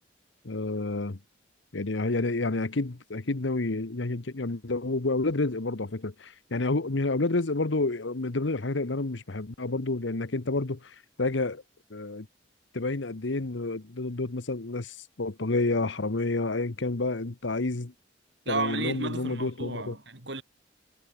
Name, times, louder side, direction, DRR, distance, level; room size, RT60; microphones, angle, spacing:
voice 1, 0.4-1.2 1.7-11.6 11.9-12.3 12.7-17.9 18.5-20.0, left 2 dB, 75° left, 1.1 m, -29 dB
voice 2, 18.5-20.4, right 3 dB, 65° right, 4.2 m, -33 dB
head